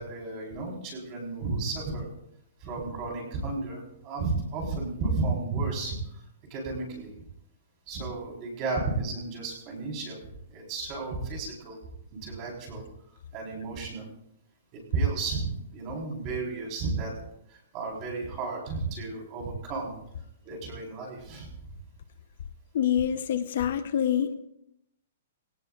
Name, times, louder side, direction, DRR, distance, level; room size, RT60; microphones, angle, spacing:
voice 1, 0.0-2.1 2.6-6.2 6.5-7.1 7.9-10.2 10.5-11.8 12.1-12.8 13.3-14.1 14.7-17.1 17.5-20.0 20.4-21.5, right 3 dB, 25° right, -1 dB, 4.2 m, -33 dB
voice 2, 22.7-24.3, left 9 dB, 50° left, 10 dB, 0.8 m, -26 dB
23.0 x 17.5 x 2.5 m, 0.77 s
hypercardioid pair, 180°, 0 cm